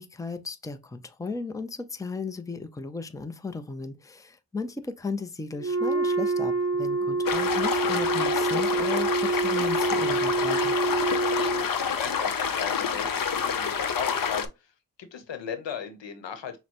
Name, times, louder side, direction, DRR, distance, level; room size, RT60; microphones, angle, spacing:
voice 1, 0.0-10.8, left 4 dB, 10° left, 0.5 m, -35 dB
Wind instrument woodwind instrument, 5.6-11.7, right 3 dB, 35° right, 0.7 m, -26 dB
sound 1, 7.3-14.5, left 6 dB, 50° left, 0.7 m, -28 dB
voice 2, 11.1-14.5 15.0-16.6, left 7 dB, 85° left, 0.9 m, -37 dB
6.2 x 2.2 x 2.9 m
cardioid pair, 60°, 42 cm